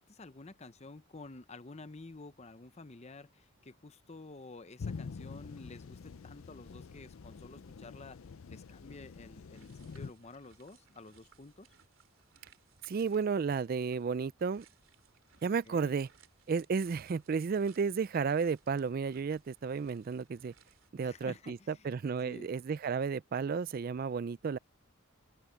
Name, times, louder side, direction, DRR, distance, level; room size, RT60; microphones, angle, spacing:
voice 1, 0.0-8.2 8.5-11.7 15.7-15.9 21.0-22.5, left 3 dB, 30° left, 0.8 m, -51 dB
sound 1, 4.8-10.1, left 5 dB, 80° left, 0.5 m, -46 dB
sound 2, 9.5-20.9, right 6 dB, 70° right, 3.4 m, -65 dB
voice 2, 12.8-14.7 15.4-16.1 16.5-20.5 20.9-21.6 21.8-24.6, right 5 dB, 45° right, 0.3 m, -32 dB
open air
head